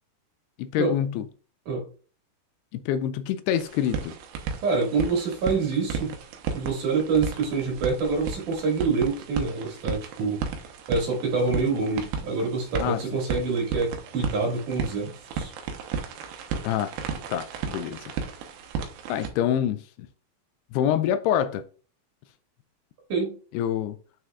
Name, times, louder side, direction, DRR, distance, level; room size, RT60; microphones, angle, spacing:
voice 1, 0.6-1.3 2.7-4.1 12.8-13.0 16.6-16.9 17.3-18.0 19.1-19.8 20.7-21.6 23.5-24.0, left 10 dB, 85° left, 2.5 m, -26 dB
sound 1, 3.5-19.3, right 6 dB, 75° right, 2.7 m, -34 dB
voice 2, 4.6-6.2 6.5-10.4 10.9-15.5 23.1-23.4, right 4 dB, 55° right, 3.2 m, -26 dB
9.0 x 6.3 x 2.4 m
omnidirectional pair, 4.8 m